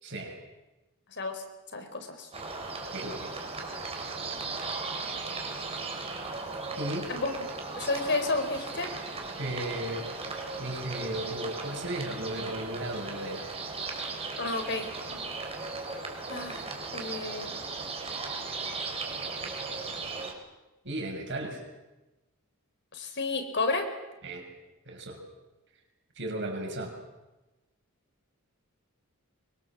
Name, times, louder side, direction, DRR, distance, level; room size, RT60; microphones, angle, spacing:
voice 1, 0.0-0.3 2.9-3.3 6.8-7.1 9.4-10.1 10.6-13.5 20.8-21.6 24.2-24.5 24.9-25.2 26.2-27.0, right 1 dB, 55° right, 2 dB, 6.5 m, -35 dB
voice 2, 1.1-1.4 1.7-2.3 7.1-7.4 7.7-8.9 14.4-15.2 16.3-16.7 16.9-17.6 22.9-23.9, left 3 dB, 55° left, 6 dB, 4.2 m, -31 dB
sound 1, 2.3-20.3, right 3 dB, 30° right, 4.5 m, -37 dB
24.0 x 24.0 x 7.5 m, 1.1 s
head